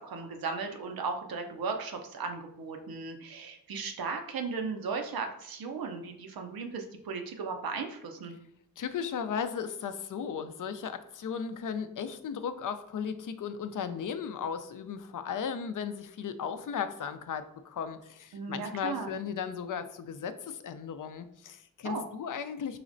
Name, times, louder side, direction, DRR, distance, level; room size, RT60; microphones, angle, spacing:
voice 1, 0.0-8.3 18.3-19.1 21.8-22.0, right 4 dB, 85° right, 4 dB, 0.7 m, -36 dB
voice 2, 8.8-22.8, left 7 dB, 65° left, 10 dB, 0.5 m, -36 dB
4.8 x 3.1 x 2.5 m, 0.73 s
cardioid pair, 55°, 35 cm